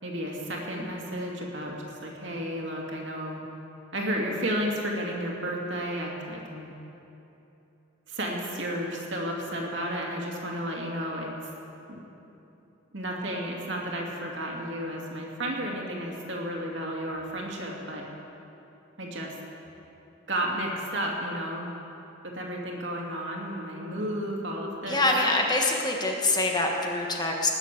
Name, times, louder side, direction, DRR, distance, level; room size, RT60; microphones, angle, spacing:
voice 1, 0.0-3.4 3.9-6.7 8.1-11.5 11.9-12.0 12.9-18.1 19.0-19.3 20.3-21.7 22.2-25.0, equal, 60° right, -1 dB, 2.5 m, -32 dB
voice 2, 24.9-27.5, left 2 dB, 20° left, 0 dB, 1.3 m, -25 dB
19.0 x 7.3 x 8.4 m, 2.9 s
head